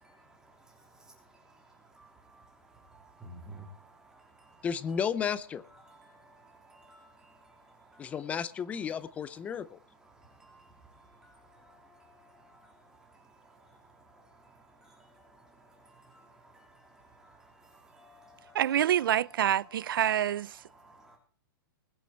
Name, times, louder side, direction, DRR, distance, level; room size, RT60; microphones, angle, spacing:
voice 1, 0.1-4.7 5.8-8.1 9.6-9.7 10.0-20.0 20.6-21.2, right 1 dB, 5° right, 3.3 m, -56 dB
voice 2, 4.6-5.6 8.0-9.8, left 7 dB, 10° left, 0.5 m, -33 dB
voice 3, 18.5-20.6, right 11 dB, 70° right, 0.5 m, -27 dB
20.5 x 8.1 x 4.4 m
hypercardioid pair, 165°, 12 cm